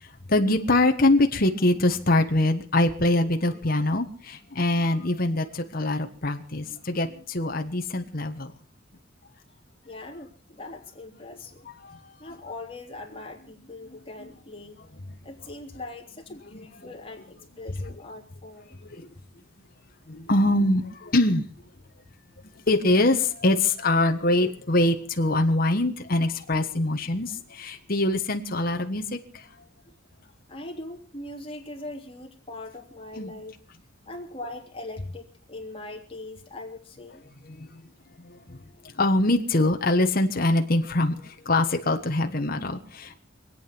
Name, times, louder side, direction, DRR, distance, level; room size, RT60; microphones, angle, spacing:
voice 1, 0.0-8.5 11.8-12.1 14.2-14.3 14.9-15.2 16.5-16.6 17.7-17.9 18.9-19.1 20.1-21.4 22.4-29.5 33.1-33.3 37.4-37.9 38.2-38.7 38.9-43.1, left 2 dB, 50° left, 5 dB, 1.4 m, -24 dB
voice 2, 9.8-11.6 12.2-14.8 15.2-18.8 30.5-33.5 34.1-37.2, left 2 dB, 30° left, 1 dB, 3.3 m, -41 dB
25.5 x 9.1 x 6.0 m, 0.42 s
head